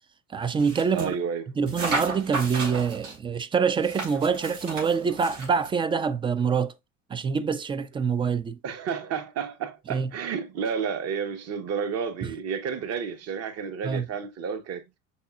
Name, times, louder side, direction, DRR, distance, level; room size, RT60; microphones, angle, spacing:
voice 1, 0.3-1.1 1.6-6.7 7.1-8.6 9.9-10.1 12.2-12.3 13.8-14.1, right 6 dB, 15° right, 0.3 m, -25 dB
sound 1, 0.6-1.1 1.7-3.2 3.8-5.7, right 3 dB, 80° right, 3.1 m, -33 dB
voice 2, 0.9-1.4 8.6-14.8, right 6 dB, 40° right, 1.0 m, -31 dB
5.4 x 4.1 x 2.3 m
hypercardioid pair, 80°, 38 cm